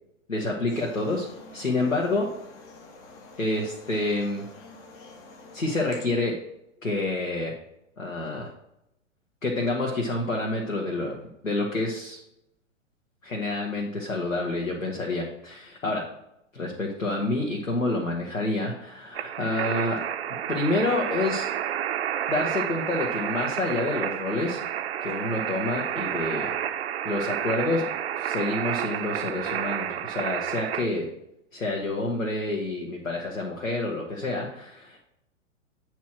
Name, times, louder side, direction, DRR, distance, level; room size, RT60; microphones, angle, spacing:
voice 1, 0.3-1.3 1.5-2.3 3.4-4.5 5.5-6.4 6.8-7.5 8.0-8.5 9.4-11.1 11.4-12.2 13.2-16.1 16.5-20.0 20.5-21.5 22.3-24.6 25.0-26.5 27.0-27.9 28.2-31.1 31.5-35.0, left 2 dB, 85° left, -2 dB, 1.3 m, -28 dB
voice 2, 2.7-3.4 4.4-5.6, left 3 dB, 10° left, 5 dB, 0.4 m, -48 dB
sound 1, 19.1-30.9, right 10 dB, 55° right, 0.5 m, -30 dB
8.3 x 3.1 x 6.0 m, 0.82 s
figure-of-eight pair, 110°, 39 cm